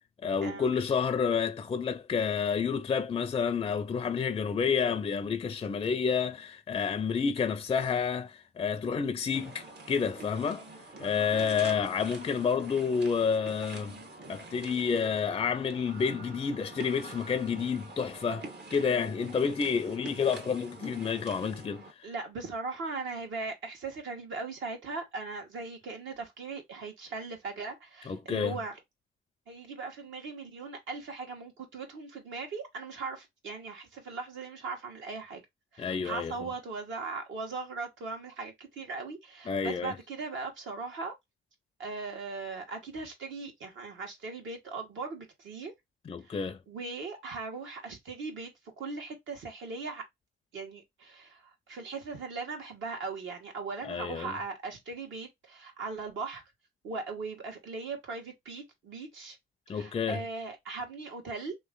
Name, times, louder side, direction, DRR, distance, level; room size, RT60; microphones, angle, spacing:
voice 1, 0.2-10.6 11.0-14.0 14.3-21.8 28.1-28.6 35.8-36.3 39.5-39.9 46.1-46.6 53.8-54.4 59.7-60.2, left 6 dB, 25° left, 0.4 m, -29 dB
sound 1, 9.3-21.9, right 2 dB, 60° right, 1.2 m, -46 dB
voice 2, 22.0-28.7 29.5-35.4 35.7-41.1 41.8-45.7 46.3-48.5 48.8-50.0 50.5-56.4 56.8-59.4 59.7-61.6, right 4 dB, 75° right, 1.5 m, -39 dB
3.1 x 2.5 x 3.7 m
cardioid pair, 90°, 20 cm